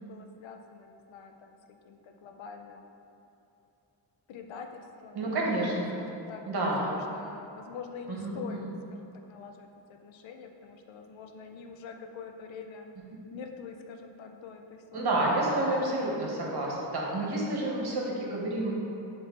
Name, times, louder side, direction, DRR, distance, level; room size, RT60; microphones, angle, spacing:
voice 1, 0.0-1.6 1.8-2.9 4.3-5.3 6.0-12.9 13.3-15.1 17.6-18.0, left 5 dB, 80° left, 4 dB, 0.6 m, -45 dB
voice 2, 5.1-5.9 6.5-6.9 8.1-8.7 14.9-18.8, right 1 dB, 55° right, -3 dB, 1.2 m, -29 dB
6.5 x 3.2 x 4.5 m, 2.9 s
wide cardioid pair, 120°, 45 cm